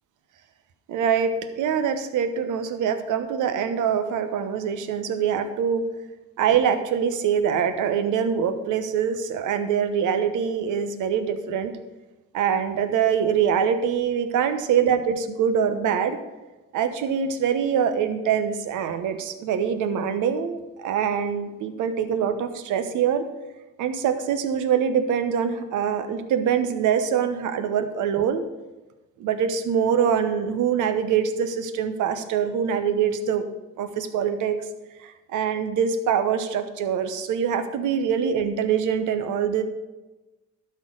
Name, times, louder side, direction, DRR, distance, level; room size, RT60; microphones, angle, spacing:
voice 1, 0.9-5.9 6.4-11.7 12.3-16.2 16.7-23.3 23.8-28.4 29.2-33.5 33.8-34.7 35.0-39.6, right 7 dB, 70° right, 9 dB, 1.1 m, -24 dB
12.0 x 4.5 x 6.4 m, 1.1 s
cardioid pair, 95°, 32 cm